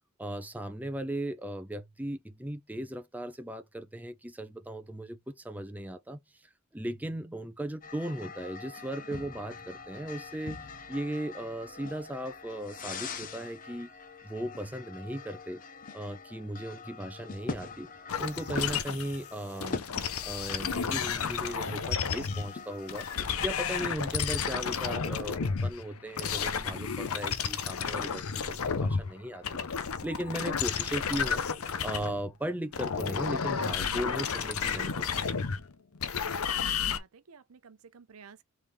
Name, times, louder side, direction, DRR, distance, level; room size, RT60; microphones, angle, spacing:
voice 1, 0.2-6.2 6.7-13.9 14.2-15.6 15.9-17.9 18.2-19.9 20.2-23.1 23.4-31.4 31.8-35.3, right 1 dB, 10° right, 0.5 m, -37 dB
sound 1, 7.8-23.9, left 4 dB, 40° left, 0.7 m, -43 dB
sound 2, 18.1-19.2 19.6-22.5 22.9-29.1 29.3-32.3 32.7-37.0, left 6 dB, 90° left, 0.7 m, -32 dB
voice 2, 36.4-38.4, right 6 dB, 80° right, 0.6 m, -54 dB
3.6 x 3.3 x 4.2 m
head